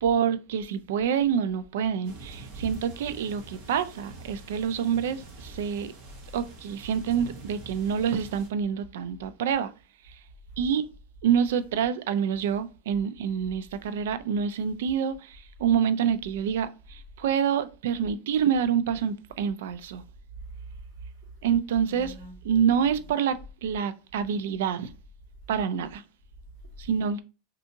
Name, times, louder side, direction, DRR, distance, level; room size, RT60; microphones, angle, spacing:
voice 1, 0.0-5.9 6.3-9.7 10.0-10.2 10.6-10.8 11.2-20.0 21.4-22.1 22.5-24.9 25.5-26.0 26.8-27.2, right 8 dB, 85° right, 0.3 m, -27 dB
sound 1, 2.0-8.5, right 2 dB, 45° right, 1.2 m, -45 dB
voice 2, 20.4-21.5 21.8-23.0, right 2 dB, 30° left, 2.0 m, -44 dB
3.4 x 2.7 x 2.6 m
supercardioid pair, 170°, 0 cm